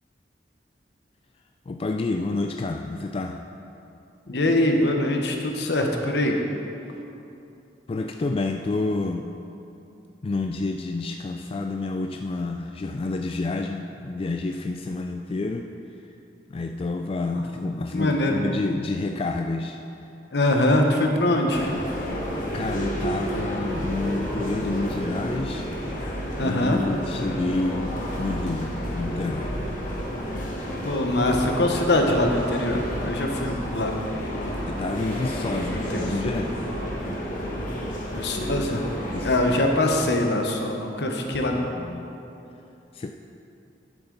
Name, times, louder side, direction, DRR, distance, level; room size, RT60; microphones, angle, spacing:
voice 1, 1.7-3.5 7.9-9.3 10.2-15.7 16.5-20.1 22.1-25.7 26.4-29.6 34.7-36.6 39.0-39.8 41.7-42.1 42.9-43.1, left 3 dB, 30° left, 4 dB, 0.3 m, -29 dB
voice 2, 4.3-6.3 17.9-18.4 20.3-21.8 26.4-26.8 30.8-33.9 34.3-34.5 35.7-36.0 38.1-38.8 39.2-41.7, left 1 dB, 70° left, 2 dB, 1.1 m, -23 dB
sound 1, 21.5-39.5, equal, 50° left, 1.6 m, -31 dB
11.0 x 7.8 x 4.0 m, 2.8 s
head